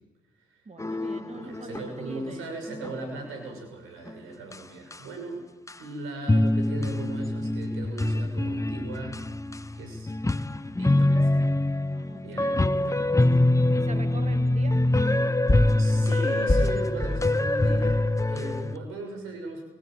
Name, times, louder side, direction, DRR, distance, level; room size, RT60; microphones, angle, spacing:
voice 1, 0.7-2.5 11.9-12.5 13.7-14.8, right 3 dB, 30° right, 9 dB, 1.8 m, -43 dB
sound 1, 0.8-1.8 2.1-2.2 2.7-3.0 4.1-4.2 4.5-4.6 4.9-5.0 5.7-5.8 6.3-18.8, left 1 dB, 15° left, 1.0 m, -24 dB
voice 2, 1.3-5.4 5.8-9.2 9.7-10.1 10.8-11.5 12.2-13.5 15.8-19.7, right 2 dB, 90° right, 4 dB, 6.4 m, -38 dB
24.0 x 15.5 x 9.1 m, 1.1 s
supercardioid pair, 55°, 21 cm